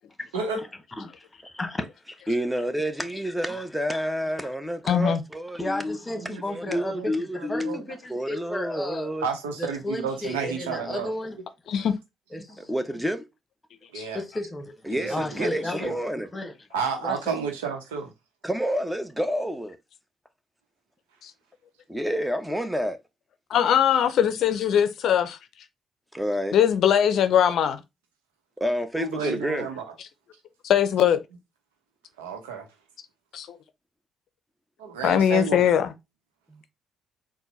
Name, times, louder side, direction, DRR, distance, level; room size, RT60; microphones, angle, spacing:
voice 1, 1.0-2.2 3.1-3.6 3.9-4.0 5.6-9.1 9.6-11.4 11.7-11.9 12.3-12.7 14.1-16.5 17.0-17.3, left 1 dB, 25° left, 1.3 m, -34 dB
voice 2, 2.3-6.0 6.5-7.8 8.1-9.2 12.6-13.2 14.8-16.3 18.4-19.8 21.9-23.0 26.1-26.6 28.6-29.7 36.5-36.6, equal, 5° right, 0.9 m, -29 dB
voice 3, 4.9-5.2 11.7-11.9 13.9-14.0 21.2-21.3 23.5-25.4 26.5-27.8 30.6-31.2 33.3-33.6 35.0-35.9, left 9 dB, 65° left, 0.5 m, -21 dB
voice 4, 6.2-7.1 7.4-7.8 9.2-11.1 13.9-14.2 14.9-15.5 15.8-15.9 16.7-18.1 29.0-29.8 32.2-32.7 34.8-35.6, right 6 dB, 85° right, 0.8 m, -31 dB
4.3 x 2.2 x 4.1 m
hypercardioid pair, 45°, 0 cm